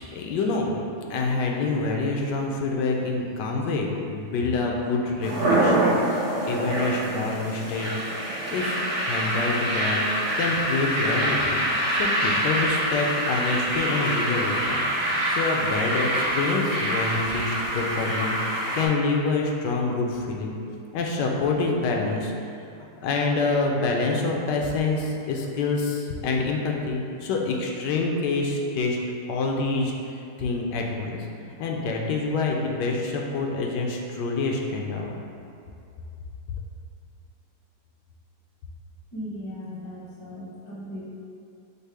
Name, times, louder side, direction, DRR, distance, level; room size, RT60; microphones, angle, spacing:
voice 1, 0.1-5.9 6.4-7.9 8.3-8.7 9.0-10.1 10.4-11.6 11.9-18.4 18.7-20.6 20.9-22.3 23.0-29.0 29.3-31.3 31.6-35.1, left 3 dB, 85° left, 0 dB, 1.2 m, -26 dB
sound 1, 5.2-18.8, right 1 dB, 40° right, 1.0 m, -25 dB
voice 2, 39.1-41.1, equal, 20° left, -6 dB, 0.5 m, -37 dB
5.3 x 2.0 x 4.7 m, 2.6 s
omnidirectional pair, 1.8 m